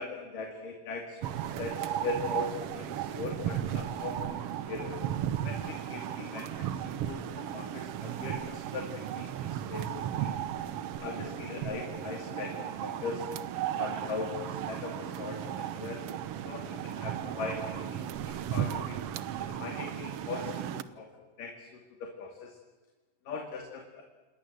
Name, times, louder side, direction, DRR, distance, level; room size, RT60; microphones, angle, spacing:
voice 1, 0.0-5.0 5.4-9.9 10.2-10.3 11.0-13.3 13.8-16.0 16.5-18.0 18.3-19.0 19.4-22.6 23.3-24.0, left 4 dB, 75° left, 2 dB, 4.1 m, -40 dB
sound 1, 1.2-20.8, right 10 dB, 70° right, 1.4 m, -35 dB
28.5 x 21.0 x 7.9 m, 1.3 s
omnidirectional pair, 3.8 m